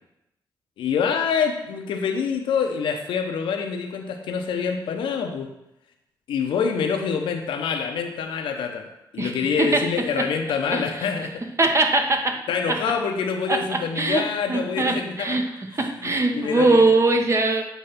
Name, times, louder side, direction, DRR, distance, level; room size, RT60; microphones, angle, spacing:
voice 1, 0.8-5.5 6.3-8.9 9.1-11.4 12.5-15.4 16.0-16.9, left 6 dB, 90° left, 4 dB, 0.8 m, -26 dB
voice 2, 9.2-10.3 10.7-10.8 11.6-12.4 12.7-12.8 13.5-17.7, right 2 dB, 35° right, 4 dB, 1.1 m, -22 dB
8.1 x 3.2 x 5.7 m, 0.87 s
cardioid pair, 65°, 8 cm